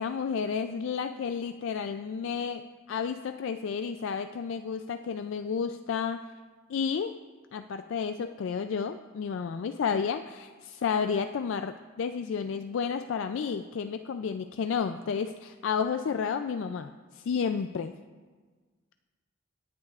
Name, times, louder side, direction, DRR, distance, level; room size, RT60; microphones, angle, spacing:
voice 1, 0.0-6.3 6.7-7.2 7.5-17.9, left 6 dB, 65° left, 9 dB, 0.3 m, -31 dB
18.0 x 9.5 x 2.4 m, 1.4 s
head